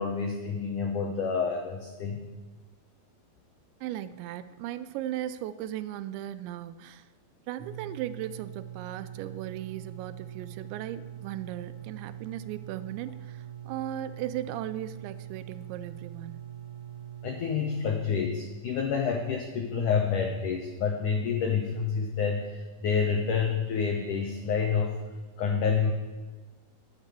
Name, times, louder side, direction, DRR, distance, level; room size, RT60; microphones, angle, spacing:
voice 1, 0.0-2.2 17.2-25.0 25.4-25.9, left 6 dB, 85° left, 3 dB, 1.7 m, -28 dB
voice 2, 3.8-7.1 7.5-16.6, right 12 dB, 85° right, 14 dB, 2.8 m, -37 dB
sound 1, 7.6-17.9, right 10 dB, 60° right, 1.9 m, -43 dB
10.5 x 9.7 x 8.3 m, 1.3 s
omnidirectional pair, 5.4 m